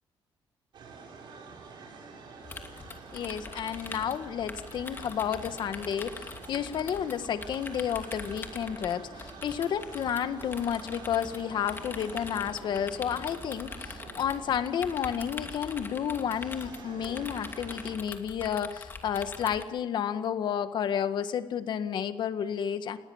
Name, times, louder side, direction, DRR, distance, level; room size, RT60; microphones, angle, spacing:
sound 1, 0.7-18.0, right 4 dB, 65° right, 6.9 m, -47 dB
sound 2, 2.4-19.6, left 4 dB, 25° left, 2.6 m, -43 dB
voice 1, 3.1-23.0, left 8 dB, 60° left, 10 dB, 1.7 m, -31 dB
29.0 x 20.0 x 7.3 m, 1.1 s
cardioid pair, 150°, 9 cm